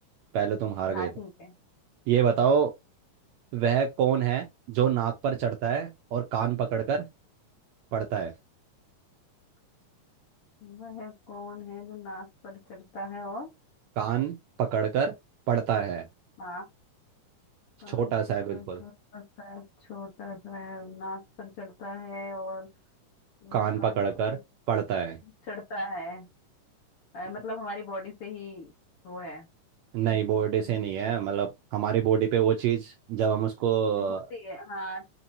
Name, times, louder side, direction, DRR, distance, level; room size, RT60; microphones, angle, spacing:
voice 1, 0.3-1.1 2.1-2.7 3.5-7.0 7.9-8.3 14.0-15.1 15.5-16.1 17.9-18.8 23.5-24.4 24.7-25.2 29.9-34.2, right 8 dB, 80° right, 1.6 m, -26 dB
voice 2, 0.9-1.5 10.6-13.5 16.4-16.7 17.8-18.1 18.5-22.7 23.4-24.4 25.2-26.3 27.1-28.7 29.0-29.5 30.0-30.9 34.0-35.1, left 1 dB, 60° left, 1.6 m, -40 dB
5.2 x 2.8 x 2.7 m
omnidirectional pair, 3.7 m